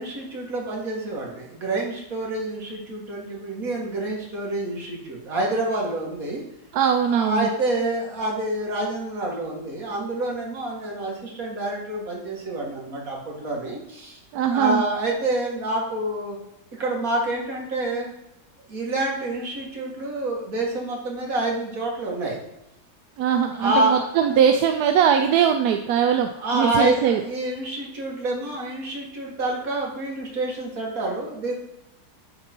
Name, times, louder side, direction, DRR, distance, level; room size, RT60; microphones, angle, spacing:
voice 1, 0.0-6.4 7.1-14.2 14.5-16.4 16.7-18.1 18.7-22.4 23.6-24.1 26.3-31.5, right 1 dB, 55° right, -2 dB, 2.3 m, -27 dB
voice 2, 6.7-7.5 14.3-14.8 23.2-27.2, right 8 dB, 70° right, 6 dB, 1.0 m, -20 dB
10.5 x 3.9 x 4.4 m, 0.90 s
omnidirectional pair, 1.9 m